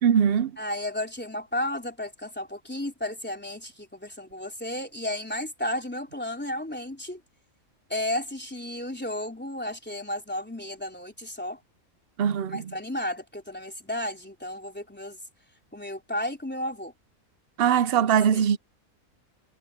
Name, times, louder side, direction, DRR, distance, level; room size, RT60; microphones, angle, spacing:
voice 1, 0.0-0.5 12.2-12.7 17.6-18.6, right 8 dB, 60° right, 0.7 m, -21 dB
voice 2, 0.6-7.2 7.9-11.6 12.5-15.2 15.7-16.9 18.0-18.4, left 1 dB, 5° left, 3.5 m, -33 dB
omnidirectional pair, 1.4 m